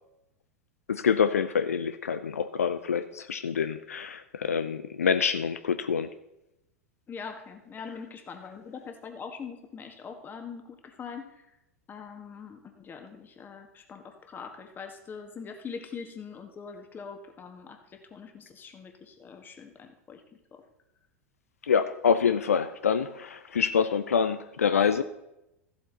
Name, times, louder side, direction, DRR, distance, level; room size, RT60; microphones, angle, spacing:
voice 1, 0.9-6.1 21.6-25.0, left 6 dB, 80° left, 11 dB, 0.5 m, -26 dB
voice 2, 7.1-11.3 11.9-17.8 18.1-20.2 20.5-20.6, left 6 dB, 25° left, 5 dB, 1.6 m, -42 dB
14.0 x 7.9 x 4.0 m, 0.90 s
figure-of-eight pair, 90°, 8 cm